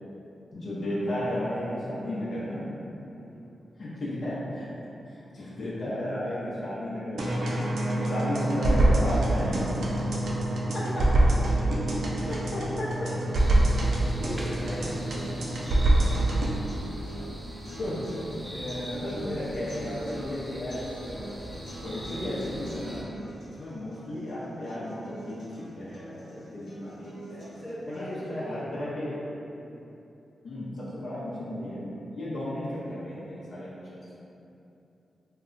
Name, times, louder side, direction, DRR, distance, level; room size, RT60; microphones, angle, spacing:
voice 1, 0.5-2.9 3.8-4.7 5.3-7.4 7.9-9.7 10.7-10.8 12.2-12.9 17.8-18.0 18.5-21.3 21.8-23.0 23.6-27.4 27.9-29.2 30.4-34.2, left 1 dB, 70° left, -10 dB, 0.7 m, -34 dB
voice 2, 3.1-3.5 10.3-10.9 12.9-13.3 14.1-15.4 17.1-17.4 27.4-28.7 29.5-29.8, equal, 20° left, -8 dB, 1.0 m, -40 dB
sound 1, 7.2-16.6, right 1 dB, 80° right, 0.4 m, -25 dB
sound 2, 12.2-28.2, right 1 dB, 90° left, 1.0 m, -45 dB
sound 3, 13.3-23.0, equal, 15° right, 0.5 m, -42 dB
2.3 x 2.2 x 3.8 m, 2.8 s
cardioid pair, 55°, 0 cm